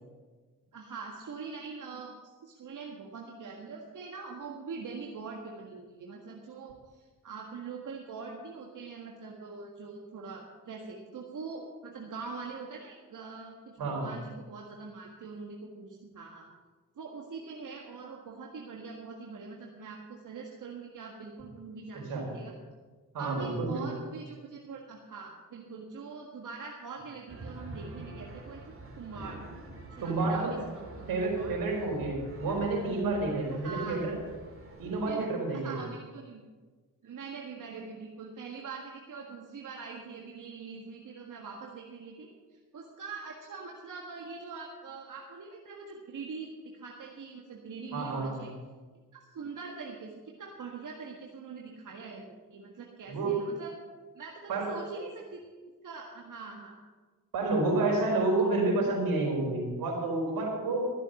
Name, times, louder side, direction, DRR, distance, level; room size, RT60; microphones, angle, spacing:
voice 1, 0.7-2.1 2.4-16.5 17.0-22.5 23.2-29.4 29.9-31.6 32.5-32.6 33.6-34.1 35.1-35.3 35.5-36.4 37.0-48.5 49.1-53.8 54.2-55.4 55.8-56.8, right 4 dB, 60° right, -1 dB, 1.8 m, -43 dB
voice 2, 23.1-23.9 30.0-30.6 31.1-34.2 34.8-35.8 47.9-48.5 53.1-53.4 54.5-54.7 57.3-60.9, right 3 dB, 80° right, -1 dB, 4.7 m, -29 dB
sound 1, 27.3-35.1, right 2 dB, 35° right, 3.3 m, -46 dB
13.5 x 7.5 x 7.7 m, 1.4 s
cardioid pair, 70°, 35 cm